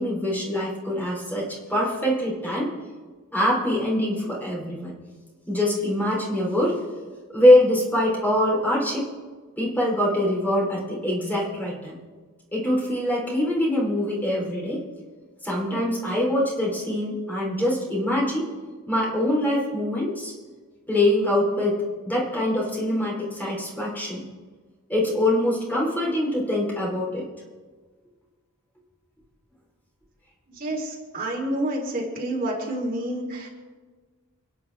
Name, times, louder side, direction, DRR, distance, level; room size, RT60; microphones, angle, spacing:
voice 1, 0.0-2.7 3.3-4.9 5.5-6.8 7.3-9.1 9.6-11.9 12.5-14.8 15.4-18.5 18.9-20.3 20.9-24.2 24.9-27.2, left 1 dB, 10° left, -4 dB, 4.0 m, -23 dB
voice 2, 30.6-33.5, right 1 dB, 40° right, -2 dB, 3.7 m, -29 dB
30.0 x 10.5 x 3.6 m, 1.4 s
head